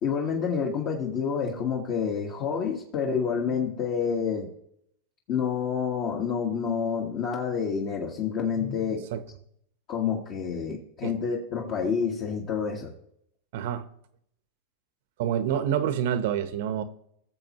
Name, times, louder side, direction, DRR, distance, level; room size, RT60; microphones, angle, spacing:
voice 1, 0.0-4.5 5.3-9.0 9.9-12.9, left 6 dB, 45° left, 1.6 m, -28 dB
voice 2, 13.5-13.9 15.2-16.8, right 9 dB, 65° right, 1.0 m, -27 dB
18.0 x 7.2 x 3.1 m
supercardioid pair, 130°, 0 cm